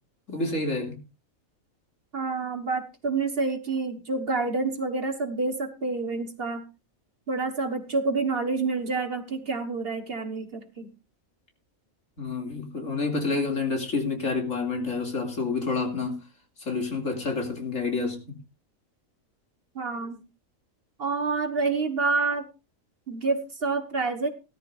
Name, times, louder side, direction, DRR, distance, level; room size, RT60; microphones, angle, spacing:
voice 1, 0.3-1.0 12.2-16.2 16.6-18.4, left 3 dB, 65° left, 3 dB, 3.1 m, -28 dB
voice 2, 2.1-6.6 7.3-10.9 19.7-20.2 21.0-22.5 23.1-24.3, right 3 dB, 45° right, 7 dB, 1.6 m, -28 dB
18.0 x 13.0 x 2.6 m, 0.29 s
omnidirectional pair, 1.4 m